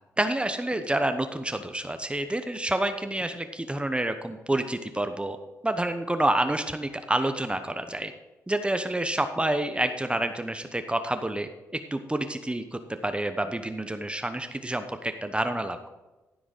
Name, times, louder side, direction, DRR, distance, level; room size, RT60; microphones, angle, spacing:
voice 1, 0.2-5.4 5.6-8.1 8.5-15.8, right 1 dB, 15° right, 8 dB, 1.0 m, -28 dB
13.5 x 5.1 x 6.2 m, 1.1 s
hypercardioid pair, 45°, 7 cm